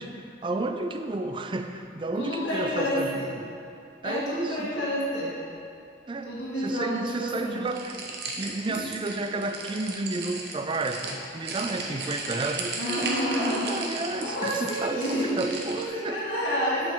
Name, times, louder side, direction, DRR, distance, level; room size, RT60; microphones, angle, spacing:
voice 1, 0.0-3.5 4.0-4.9 6.1-6.3 6.6-16.2, right 2 dB, 25° right, 6 dB, 0.3 m, -32 dB
voice 2, 2.2-3.3 4.0-5.3 6.3-7.7 8.7-8.8 12.8-13.7 14.1-15.4 15.7-16.9, equal, 90° left, -8 dB, 1.8 m, -29 dB
sound 1, 7.7-15.9, right 3 dB, 60° right, 0.9 m, -36 dB
7.6 x 7.2 x 3.8 m, 2.5 s
head